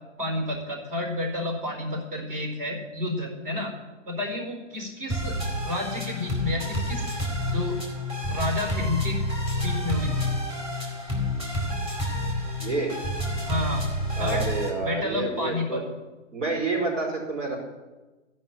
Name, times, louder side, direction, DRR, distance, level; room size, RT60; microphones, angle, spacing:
voice 1, 0.2-3.7 4.1-5.3 5.6-7.1 7.4-7.8 8.3-9.2 9.6-10.3 13.5-13.8 14.2-14.5 14.8-15.8, left 1 dB, 45° right, 1 dB, 4.4 m, -30 dB
sound 1, 5.1-14.7, left 1 dB, 15° right, 2.4 m, -29 dB
voice 2, 12.6-13.0 14.2-15.8 16.3-17.6, right 3 dB, 70° right, -1 dB, 4.7 m, -28 dB
12.5 x 5.5 x 8.8 m, 1.2 s
hypercardioid pair, 145°, 37 cm